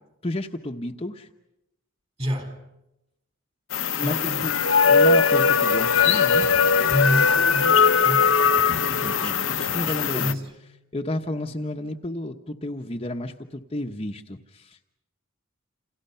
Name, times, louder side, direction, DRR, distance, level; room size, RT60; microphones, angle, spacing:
voice 1, 0.2-1.3 3.9-4.5 4.8-6.5 8.9-10.4 10.9-14.8, left 1 dB, 30° left, 1.1 m, -32 dB
voice 2, 2.2-2.6 4.0-4.5 6.9-8.3 8.7-10.5, equal, 30° right, 4.2 m, -30 dB
sound 1, 3.7-10.3, left 5 dB, 75° left, 1.0 m, -20 dB
29.0 x 29.0 x 5.7 m
head